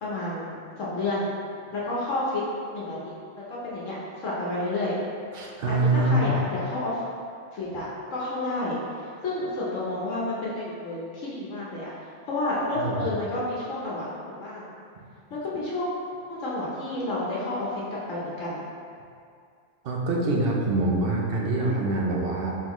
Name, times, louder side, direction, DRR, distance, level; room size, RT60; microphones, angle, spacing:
voice 1, 0.0-1.3 1.7-2.4 2.7-3.1 3.5-4.0 4.2-5.0 5.7-7.0 7.5-11.9 12.3-14.7 15.3-15.9 16.3-17.8 18.1-18.7, left 2 dB, 75° left, -6 dB, 1.1 m, -30 dB
voice 2, 5.3-6.3 12.8-13.1 19.8-22.6, right 2 dB, 55° right, -2 dB, 0.7 m, -25 dB
4.6 x 3.7 x 3.0 m, 2.3 s
omnidirectional pair, 1.3 m